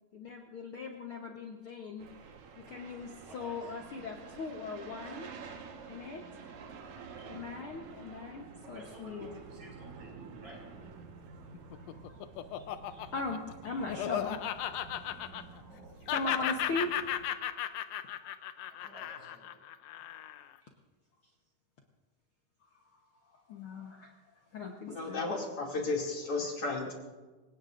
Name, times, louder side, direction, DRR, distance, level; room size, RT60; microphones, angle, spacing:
voice 1, 0.1-2.1 2.6-5.3 5.9-6.2 7.2-9.3 11.7-12.2 12.5-14.7 15.0-15.1 16.1-17.6 22.7-22.8 23.3-24.1 24.5-25.3, left 3 dB, 60° left, 1 dB, 1.4 m, -39 dB
sound 1, 2.0-17.3, right 5 dB, 65° right, 2.6 m, -50 dB
voice 2, 3.3-3.7 7.6-7.8 8.6-10.6 12.5-12.7 15.7-16.1 18.7-19.5 26.3-26.5, right 1 dB, 85° right, -3 dB, 7.6 m, -53 dB
Laughter, 11.5-15.8 16.1-20.5, left 11 dB, 80° left, 1.5 m, -36 dB
voice 3, 24.9-26.9, left 3 dB, 45° left, -2 dB, 3.4 m, -34 dB
27.5 x 17.5 x 2.6 m, 1.3 s
omnidirectional pair, 3.8 m